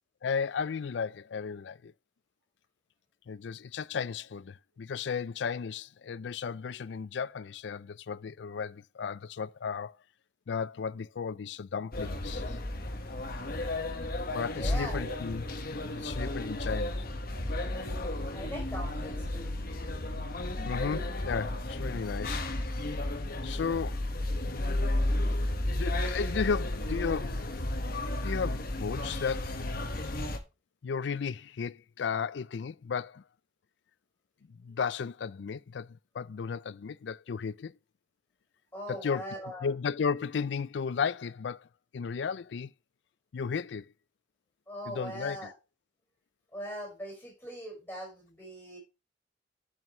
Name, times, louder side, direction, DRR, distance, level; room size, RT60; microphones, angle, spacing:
voice 1, 0.2-1.9 3.3-10.0 10.5-12.6 14.3-17.0 20.6-22.5 23.4-24.1 25.6-27.4 28.2-29.5 30.8-33.2 34.5-37.7 38.9-39.2 39.6-41.7 41.9-42.7 43.3-43.9 44.9-45.5, left 6 dB, 75° left, 0.4 m, -34 dB
sound 1, 11.9-30.4, left 1 dB, 55° left, 1.3 m, -33 dB
voice 2, 14.5-15.1 18.3-19.5 38.7-39.7 44.7-45.5 46.5-48.8, equal, 10° left, 4.9 m, -41 dB
10.5 x 5.6 x 3.0 m
head